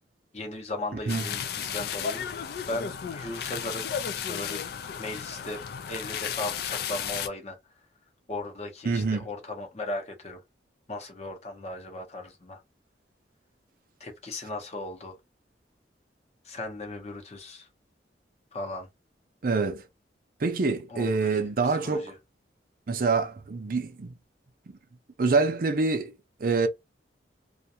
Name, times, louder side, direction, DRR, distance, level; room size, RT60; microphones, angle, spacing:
voice 1, 0.3-2.3 2.7-4.6 5.0-7.6 8.3-10.4 10.9-12.6 14.0-15.2 16.4-17.7 18.5-18.9 20.9-22.2, left 2 dB, 35° left, 0.7 m, -37 dB
sound 1, 1.1-7.3, left 8 dB, 60° left, 0.3 m, -34 dB
voice 2, 8.8-9.2 19.4-19.8 20.4-22.1 22.9-24.2 24.7-24.8 25.2-26.1 26.4-26.7, right 4 dB, 50° right, 0.5 m, -26 dB
2.5 x 2.2 x 2.7 m
head